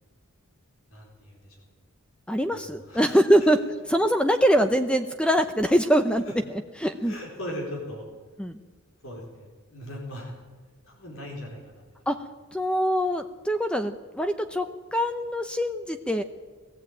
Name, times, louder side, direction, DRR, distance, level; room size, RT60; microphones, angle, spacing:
voice 1, 0.9-1.6 2.5-3.2 6.3-6.4 7.0-8.0 9.0-10.3 10.8-11.8, left 1 dB, 70° left, 0 dB, 4.5 m, -39 dB
voice 2, 2.3-3.6 3.9-7.1 8.4-8.6 12.1-12.2 12.5-16.2, equal, 5° left, 8 dB, 0.6 m, -23 dB
19.5 x 15.0 x 8.8 m, 1.4 s
head